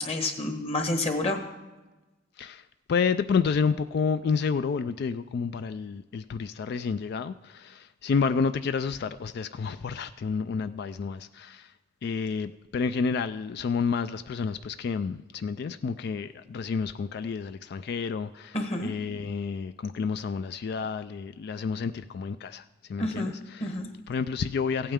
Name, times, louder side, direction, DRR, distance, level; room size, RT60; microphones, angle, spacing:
voice 1, 0.0-1.4 18.5-18.9 23.0-23.3 23.6-23.9, left 2 dB, 30° left, 1.2 m, -29 dB
voice 2, 2.9-11.7 12.0-23.8 24.1-24.9, left 5 dB, 55° left, 0.3 m, -30 dB
16.0 x 8.7 x 3.6 m
head